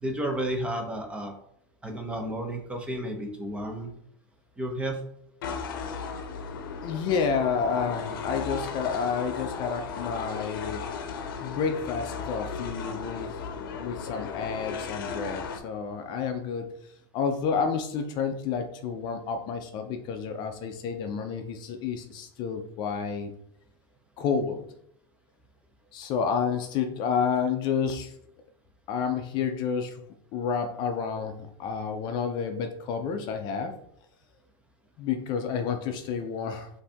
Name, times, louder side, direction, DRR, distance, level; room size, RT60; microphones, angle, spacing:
voice 1, 0.0-1.3 1.8-3.9 4.6-5.0, right 1 dB, 10° right, 2 dB, 0.7 m, -32 dB
sound 1, 5.4-15.6, left 5 dB, 90° left, 0.6 m, -35 dB
voice 2, 6.8-10.8 11.4-13.3 13.8-16.7 17.1-23.3 24.2-24.6 25.9-28.1 28.9-30.0 30.3-33.8 35.0-36.7, left 6 dB, 40° left, 6 dB, 0.5 m, -30 dB
5.4 x 2.7 x 3.4 m, 0.72 s
supercardioid pair, 145°, 11 cm